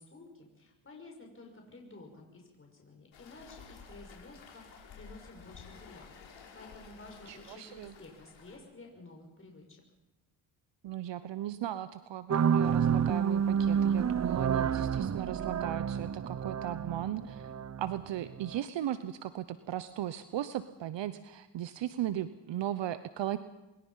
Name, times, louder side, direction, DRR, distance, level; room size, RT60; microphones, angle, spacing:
voice 1, 0.0-6.1 6.5-9.8, left 2 dB, 25° left, 1 dB, 5.9 m, -52 dB
Waves surf, 3.1-8.6, left 5 dB, 65° left, 5.4 m, -53 dB
voice 2, 7.3-7.9 10.8-17.5 17.8-23.4, right 12 dB, 60° right, 13 dB, 1.0 m, -37 dB
sound 1, 12.3-18.6, right 7 dB, 35° right, 0.9 m, -29 dB
24.5 x 21.5 x 5.7 m, 1.0 s
supercardioid pair, 70°, 49 cm